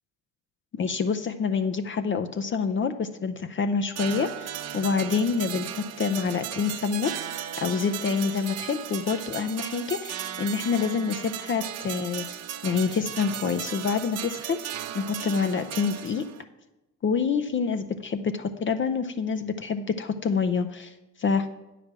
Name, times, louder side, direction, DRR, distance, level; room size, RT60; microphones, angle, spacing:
voice 1, 0.7-7.1 7.6-12.3 12.6-16.2 17.0-21.5, left 5 dB, 40° left, 8 dB, 0.6 m, -27 dB
sound 1, 3.9-16.4, right 10 dB, 55° right, 0.7 m, -36 dB
8.7 x 5.0 x 7.4 m, 0.98 s
cardioid pair, 90°, 30 cm